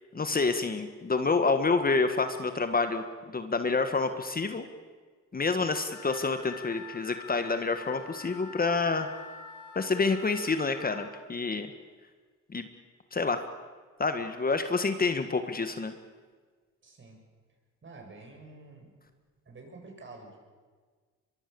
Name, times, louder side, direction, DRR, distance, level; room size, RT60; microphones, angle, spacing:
voice 1, 0.1-4.7 5.3-9.1 9.7-11.7 12.5-12.7 13.1-13.4 14.0-15.9, left 4 dB, 30° left, 8 dB, 1.7 m, -28 dB
Wind instrument woodwind instrument, 5.9-11.1, left 5 dB, 85° left, 3.4 m, -45 dB
voice 2, 16.8-17.2 17.8-19.0 19.5-20.4, right 3 dB, 40° right, 2 dB, 7.2 m, -48 dB
23.5 x 23.0 x 7.1 m, 1.5 s
cardioid pair, 90°, 30 cm